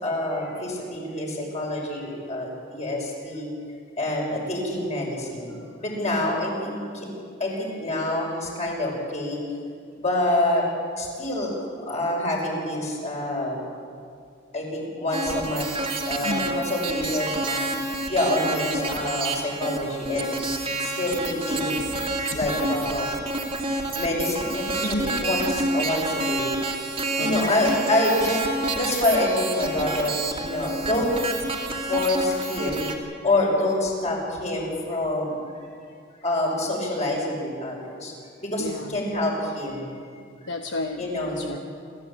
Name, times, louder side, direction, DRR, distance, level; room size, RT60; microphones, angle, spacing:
voice 1, 0.0-3.5 4.0-7.1 7.4-9.4 9.9-10.6 11.0-13.6 14.5-15.7 16.1-17.7 18.1-20.4 20.8-21.9 22.3-23.1 24.0-24.8 25.0-26.5 27.2-28.4 28.7-31.1 31.9-32.8 33.2-35.3 36.2-38.1 38.4-39.9 41.0-41.6, left 1 dB, 35° left, -1 dB, 5.9 m, -26 dB
sound 1, 15.1-33.0, right 2 dB, 30° right, 2.4 m, -29 dB
voice 2, 16.2-16.7 19.8-21.1 21.6-22.5 24.8-25.2 27.2-27.5 38.6-39.0 40.5-41.6, left 2 dB, 65° left, 4 dB, 1.1 m, -34 dB
28.0 x 14.0 x 8.7 m, 2.3 s
head